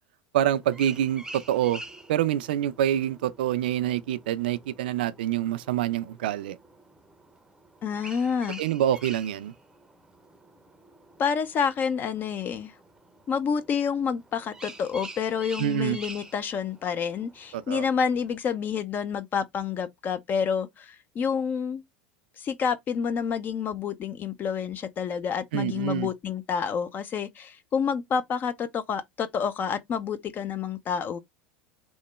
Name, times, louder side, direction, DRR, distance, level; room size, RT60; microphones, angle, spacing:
voice 1, 0.3-1.8 2.1-6.6 8.6-9.5 15.6-16.0 17.5-17.9 25.5-26.1, right 11 dB, 70° right, 0.3 m, -26 dB
sound 1, 0.6-18.4, right 2 dB, 10° right, 0.6 m, -47 dB
voice 2, 7.8-8.6 11.2-12.7 13.3-21.8 22.4-31.2, left 6 dB, 35° left, 0.4 m, -28 dB
3.0 x 2.1 x 3.0 m
hypercardioid pair, 80°, 5 cm